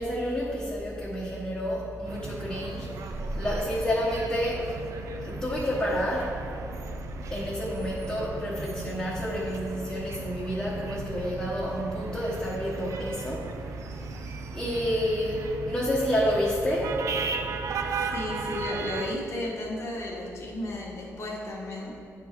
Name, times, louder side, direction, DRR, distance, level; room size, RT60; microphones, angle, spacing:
voice 1, 0.0-4.7 5.2-6.4 7.3-13.5 14.0-14.1 14.5-17.0 17.9-18.0, equal, 15° left, -7 dB, 1.0 m, -29 dB
sound 1, 2.0-19.2, right 5 dB, 70° right, 0.4 m, -37 dB
voice 2, 18.1-21.9, left 1 dB, 55° left, -2 dB, 1.4 m, -34 dB
9.3 x 3.7 x 4.5 m, 2.6 s
wide cardioid pair, 135°, 5 cm